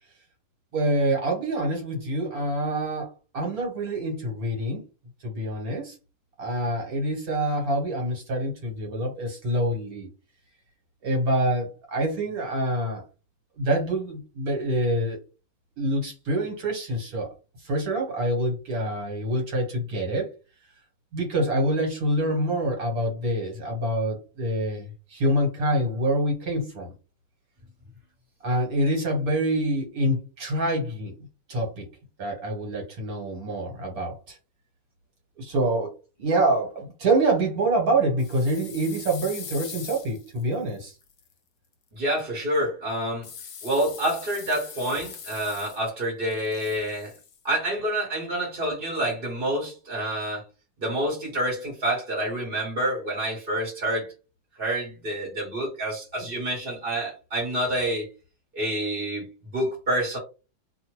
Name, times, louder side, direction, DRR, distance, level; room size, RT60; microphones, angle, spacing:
voice 1, 0.7-4.8 5.2-5.9 6.4-10.1 11.0-13.0 13.6-15.2 15.8-17.3 17.6-20.3 21.1-26.9 28.4-31.1 31.5-31.9 32.2-34.4 35.4-35.9 36.2-40.9, right 1 dB, 70° right, 1 dB, 1.7 m, -26 dB
sound 1, 38.2-41.2 43.2-46.0 46.3-47.4, left 7 dB, 60° left, 0.9 m, -42 dB
voice 2, 42.0-43.3 43.6-47.1 47.4-50.4 50.8-54.1 54.6-58.1 58.5-59.3 59.5-60.2, right 1 dB, 40° right, -2 dB, 1.2 m, -28 dB
2.7 x 2.5 x 3.0 m, 0.31 s
omnidirectional pair, 1.6 m